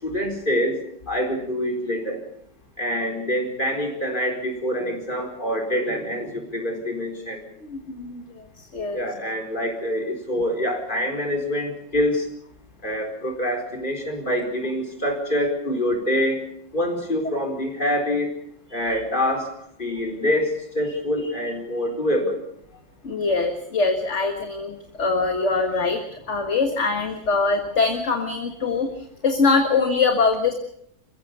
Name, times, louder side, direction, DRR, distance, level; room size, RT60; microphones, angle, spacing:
voice 1, 0.0-0.8 1.1-2.2 2.8-7.4 8.9-12.3 12.8-16.4 16.7-18.3 18.7-19.5 19.8-22.4, left 1 dB, 25° left, 2 dB, 4.5 m, -25 dB
voice 2, 7.6-9.0 20.9-21.0 23.0-30.5, left 4 dB, 40° left, 5 dB, 1.9 m, -23 dB
28.0 x 15.5 x 6.9 m, 0.72 s
omnidirectional pair, 1.9 m